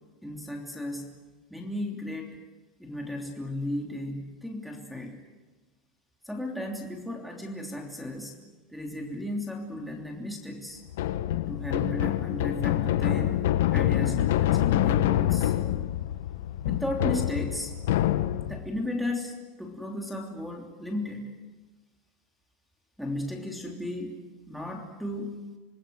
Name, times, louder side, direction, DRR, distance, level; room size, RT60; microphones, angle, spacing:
voice 1, 0.2-1.1 1.5-2.4 2.8-5.2 6.2-8.4 8.7-10.8 11.5-15.5 16.7-17.7 18.5-21.3 23.0-24.1 24.5-25.4, left 1 dB, ahead, 2 dB, 3.1 m, -35 dB
sound 1, 10.9-18.7, left 13 dB, 80° left, 1.2 m, -26 dB
27.0 x 20.5 x 8.0 m, 1.3 s
supercardioid pair, 140°, 0 cm